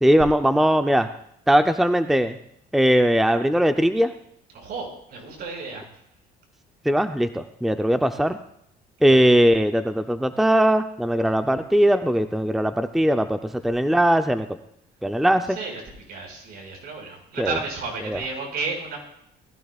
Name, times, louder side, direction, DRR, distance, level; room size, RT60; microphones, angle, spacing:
voice 1, 0.0-1.1 1.5-2.4 2.7-4.1 6.8-8.4 9.0-14.5 15.0-15.6 17.4-17.6 18.0-18.2, equal, ahead, 7 dB, 0.7 m, -20 dB
voice 2, 4.5-5.8 9.1-9.2 15.6-15.8 16.1-19.0, right 4 dB, 65° right, 0 dB, 6.2 m, -32 dB
20.5 x 15.0 x 2.5 m, 0.72 s
cardioid pair, 110°, 17 cm